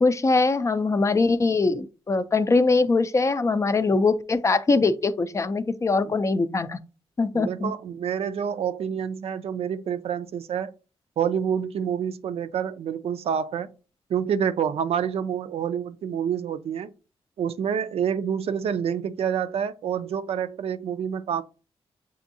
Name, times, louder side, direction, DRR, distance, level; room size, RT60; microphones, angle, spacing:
voice 1, 0.0-6.8 7.2-7.7, left 3 dB, 30° left, 0.4 m, -22 dB
voice 2, 7.3-10.7 11.2-13.7 14.1-16.9 17.4-21.4, right 8 dB, 70° right, 0.4 m, -27 dB
7.0 x 2.6 x 2.6 m
cardioid pair, 85°, 11 cm